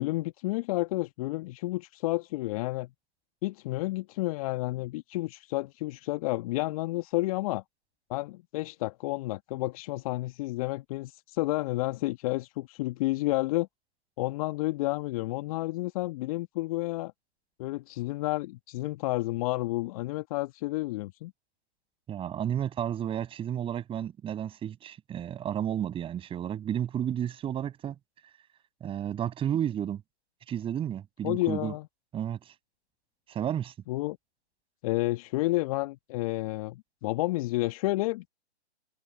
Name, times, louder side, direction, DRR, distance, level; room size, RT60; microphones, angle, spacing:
voice 1, 0.0-2.9 3.4-7.6 8.1-13.7 14.2-17.1 17.6-21.3 31.2-31.9 33.9-34.2 34.8-38.3, left 19 dB, 30° left, 1.5 m, -30 dB
voice 2, 22.1-28.0 28.8-30.0 30.5-31.7 32.1-32.4 33.3-33.7, right 10 dB, 15° right, 6.4 m, -32 dB
figure-of-eight pair, 130°, 35 cm